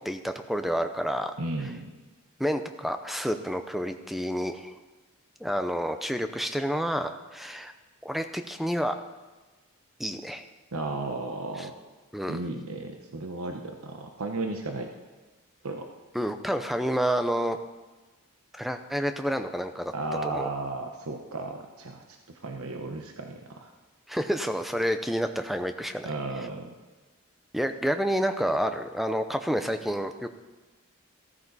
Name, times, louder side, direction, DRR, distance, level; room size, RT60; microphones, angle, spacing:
voice 1, 0.0-1.3 2.4-4.7 5.4-7.7 8.0-9.0 10.0-10.4 11.6-11.7 12.1-12.4 16.1-17.6 18.5-19.9 20.2-20.5 24.1-26.1 27.5-30.3, equal, ahead, 7 dB, 0.6 m, -29 dB
voice 2, 1.4-1.9 10.7-11.7 12.3-14.9 15.6-15.9 19.9-22.0 22.4-23.7 26.0-26.7, right 2 dB, 80° right, 3 dB, 1.0 m, -34 dB
14.5 x 13.5 x 4.1 m, 1.2 s
head